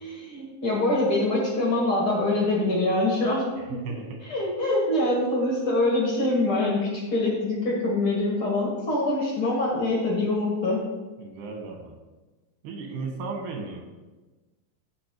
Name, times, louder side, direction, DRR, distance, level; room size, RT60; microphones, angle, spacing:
voice 1, 0.0-3.8 4.2-10.8, left 2 dB, 50° left, -3 dB, 1.8 m, -24 dB
voice 2, 3.7-4.3 11.2-11.9 12.6-13.8, right 4 dB, 70° right, 2 dB, 2.7 m, -35 dB
14.5 x 5.0 x 3.1 m, 1.2 s
omnidirectional pair, 4.0 m